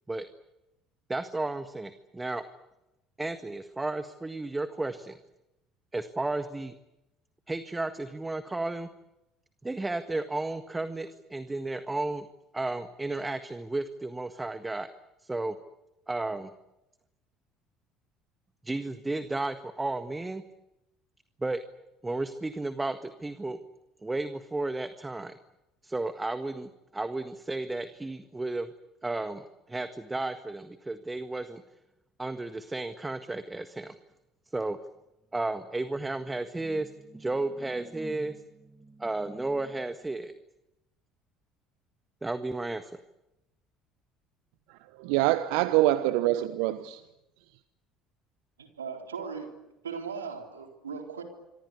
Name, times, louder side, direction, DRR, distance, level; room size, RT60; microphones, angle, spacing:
voice 1, 1.1-2.4 3.2-5.2 5.9-6.7 7.5-8.9 9.6-12.3 12.5-14.9 15.2-15.6 16.1-16.5 18.6-20.4 21.4-21.6 22.0-23.6 24.0-25.3 25.8-28.7 29.0-31.6 32.2-34.0 34.5-34.8 35.3-38.4 38.8-40.4 42.2-42.9, right 2 dB, 15° right, 10 dB, 1.7 m, -33 dB
voice 2, 45.0-47.0, right 16 dB, 70° right, 13 dB, 1.0 m, -25 dB
voice 3, 48.6-49.5 49.8-51.2, right 6 dB, 90° right, 4 dB, 4.1 m, -38 dB
27.5 x 24.5 x 8.4 m, 0.93 s
hypercardioid pair, 60°, 0 cm